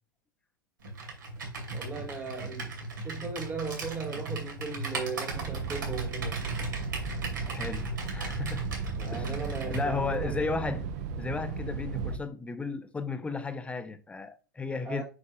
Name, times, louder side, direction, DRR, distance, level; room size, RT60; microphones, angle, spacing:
Computer keyboard, 0.8-9.9, right 2 dB, 75° right, 2.6 m, -37 dB
voice 1, 1.7-2.8 3.0-6.6 8.9-10.7 14.8-15.0, right 4 dB, 20° right, 1.4 m, -38 dB
sound 1, 5.3-12.2, right 6 dB, 45° right, 0.8 m, -36 dB
voice 2, 7.5-8.7 9.1-10.9 11.2-15.0, left 4 dB, 10° left, 0.9 m, -34 dB
8.3 x 5.3 x 2.4 m
figure-of-eight pair, 95°, 11 cm